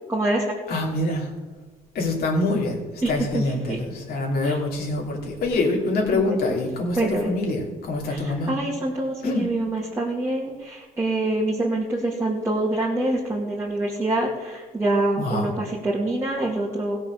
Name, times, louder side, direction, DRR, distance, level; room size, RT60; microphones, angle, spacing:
voice 1, 0.1-0.4 3.0-3.4 3.7-3.8 4.4-4.6 6.1-6.4 7.0-7.3 8.1-17.0, right 2 dB, 15° right, -4 dB, 2.3 m, -25 dB
voice 2, 0.7-1.3 1.9-8.5 9.2-9.6 15.2-15.5, left 2 dB, 65° left, -1 dB, 3.1 m, -25 dB
16.0 x 6.3 x 6.5 m, 1.4 s
cardioid pair, 110°, 17 cm